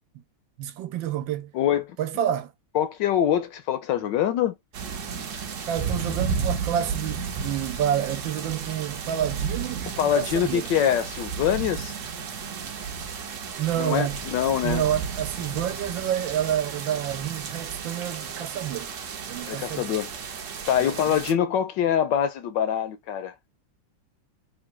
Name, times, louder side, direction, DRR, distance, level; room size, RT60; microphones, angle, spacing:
voice 1, 0.6-1.5 2.0-2.5 5.7-10.7 13.6-14.2 14.6-18.9 19.3-19.9 20.8-20.9, right 10 dB, 80° right, 1.3 m, -29 dB
voice 2, 1.5-2.0 2.7-4.5 10.0-11.9 13.8-14.8 19.5-20.1 20.7-23.3, left 9 dB, 75° left, 1.2 m, -24 dB
sound 1, 4.7-21.3, right 6 dB, 60° right, 0.8 m, -33 dB
3.7 x 2.2 x 4.5 m
omnidirectional pair, 2.2 m